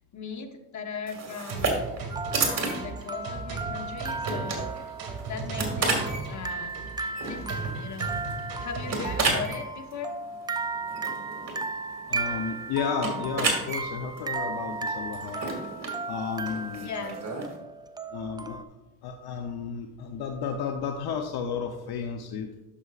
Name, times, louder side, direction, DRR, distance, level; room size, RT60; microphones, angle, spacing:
voice 1, 0.1-1.9 2.4-4.7 5.3-5.9 6.3-6.7 7.2-8.1 8.6-10.1 16.8-17.2, left 6 dB, 45° left, 5 dB, 1.2 m, -38 dB
sound 1, 1.1-17.6, right 3 dB, 40° right, 2.2 m, -33 dB
sound 2, 1.5-9.5, right 4 dB, 60° right, 1.8 m, -37 dB
sound 3, 2.1-18.6, right 4 dB, 10° right, 0.3 m, -35 dB
voice 2, 12.1-15.5 16.1-17.1 18.1-18.6 19.0-22.5, left 6 dB, 70° left, 4 dB, 0.9 m, -33 dB
11.5 x 6.3 x 2.4 m, 1.0 s
cardioid pair, 90°, 40 cm